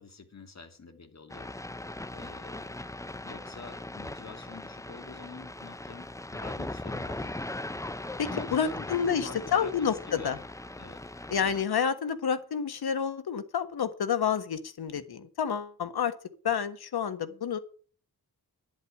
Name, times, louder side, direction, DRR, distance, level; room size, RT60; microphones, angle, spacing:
voice 1, 0.0-1.5 2.1-2.8 3.2-7.4 8.3-10.4 10.8-11.0, left 5 dB, 45° left, 7 dB, 2.5 m, -46 dB
sound 1, 1.3-11.6, left 2 dB, 10° left, 0.6 m, -39 dB
voice 2, 8.2-10.4 11.3-16.1 16.4-17.6, left 7 dB, 75° left, 10 dB, 1.6 m, -29 dB
11.0 x 8.1 x 8.6 m, 0.42 s
wide cardioid pair, 100°, 38 cm